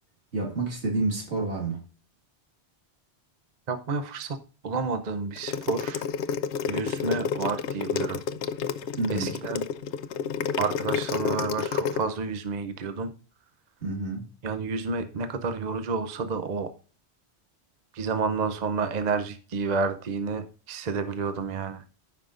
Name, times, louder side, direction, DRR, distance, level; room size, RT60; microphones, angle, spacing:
voice 1, 0.3-1.9 9.0-9.4 13.8-14.3, right 3 dB, 85° right, 2.1 m, -29 dB
voice 2, 3.7-4.4 4.6-6.0 6.7-8.2 9.1-9.6 10.6-13.1 14.4-16.7 17.9-21.8, right 4 dB, 45° right, 0.7 m, -30 dB
sound 1, 5.4-12.0, left 7 dB, 80° left, 0.9 m, -29 dB
14.5 x 5.7 x 2.5 m
omnidirectional pair, 1.1 m